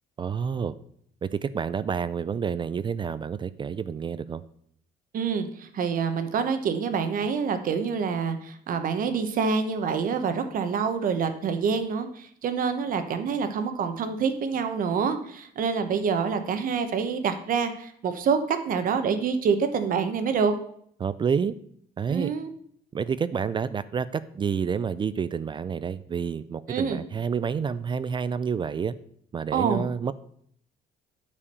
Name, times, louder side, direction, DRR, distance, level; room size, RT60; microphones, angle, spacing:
voice 1, 0.2-0.7 1.2-4.4 21.0-21.6 22.0-22.3 22.9-28.9 29.3-30.1, right 6 dB, 30° right, 15 dB, 0.4 m, -29 dB
voice 2, 5.1-20.5 22.1-22.5 26.7-27.0 29.5-29.8, right 6 dB, 55° right, 9 dB, 1.1 m, -26 dB
8.5 x 4.9 x 6.8 m, 0.64 s
cardioid pair, 110°, 17 cm